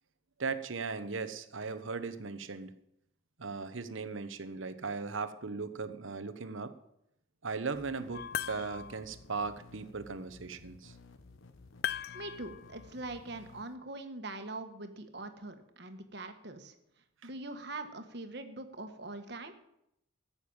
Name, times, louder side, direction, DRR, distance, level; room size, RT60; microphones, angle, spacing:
voice 1, 0.4-2.7 3.4-6.7 7.4-10.9, right 4 dB, 70° right, 12 dB, 1.0 m, -38 dB
sound 1, 7.7-13.6, left 3 dB, 75° left, 1.1 m, -55 dB
sound 2, 8.1-9.1 11.8-12.9, left 9 dB, 50° left, 0.4 m, -38 dB
voice 2, 12.1-16.7 17.2-19.5, right 2 dB, 55° right, 7 dB, 1.4 m, -43 dB
14.5 x 7.0 x 8.8 m, 0.80 s
head